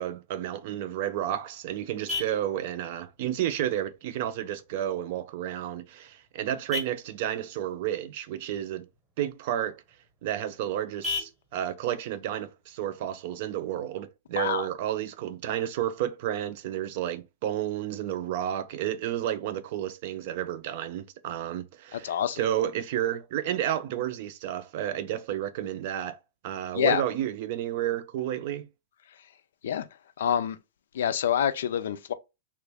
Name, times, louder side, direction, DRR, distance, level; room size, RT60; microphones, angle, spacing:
voice 1, 0.0-8.9 9.2-9.8 10.2-26.2 26.4-28.7, right 11 dB, 50° right, 0.5 m, -31 dB
Vehicle horn car horn honking, 0.8-13.8, left 3 dB, ahead, 0.9 m, -42 dB
voice 2, 14.3-14.7 21.9-22.4 26.7-27.0 29.6-29.9 30.2-30.6 30.9-32.1, left 9 dB, 75° left, 0.4 m, -26 dB
3.0 x 2.4 x 3.4 m
supercardioid pair, 160°, 0 cm